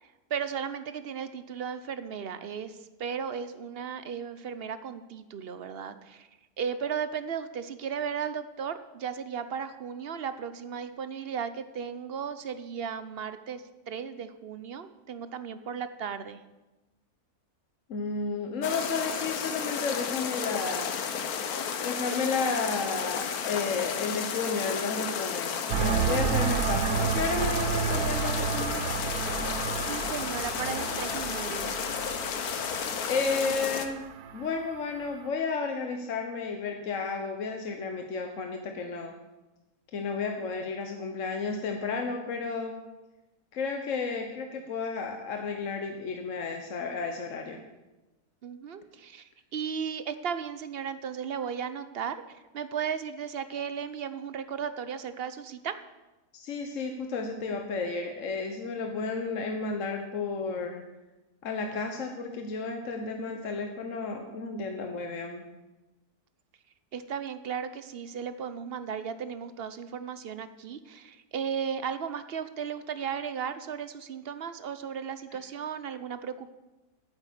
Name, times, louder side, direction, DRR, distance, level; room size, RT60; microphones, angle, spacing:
voice 1, 0.0-6.3 6.6-16.4 29.9-31.8 48.4-55.8 66.9-76.5, right 7 dB, 55° right, 11 dB, 0.7 m, -35 dB
voice 2, 17.9-21.0 21.8-28.9 33.1-34.0 34.3-39.1 39.9-42.8 43.5-47.6 56.3-60.8 61.4-65.5, left 4 dB, 60° left, 4 dB, 1.3 m, -32 dB
sound 1, 18.6-33.9, left 7 dB, 75° left, 1.4 m, -32 dB
sound 2, 25.7-35.2, right 7 dB, 80° right, 1.2 m, -31 dB
9.1 x 8.2 x 8.3 m, 1.1 s
omnidirectional pair, 1.6 m